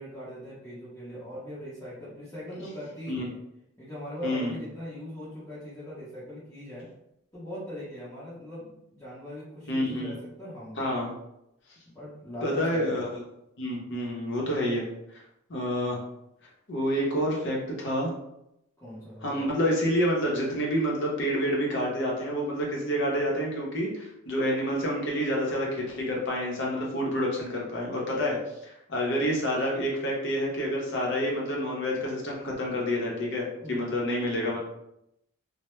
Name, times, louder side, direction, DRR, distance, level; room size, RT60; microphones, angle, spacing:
voice 1, 0.0-3.4 3.8-6.9 7.3-10.9 11.9-12.9 18.8-19.5 33.6-33.9, equal, 15° left, -10 dB, 0.7 m, -40 dB
voice 2, 4.2-4.5 9.7-10.1 10.8-11.1 12.4-13.1 13.6-14.8 15.5-16.0 16.7-18.1 19.2-34.6, equal, 60° left, -2 dB, 0.7 m, -28 dB
2.1 x 2.1 x 3.0 m, 0.83 s
head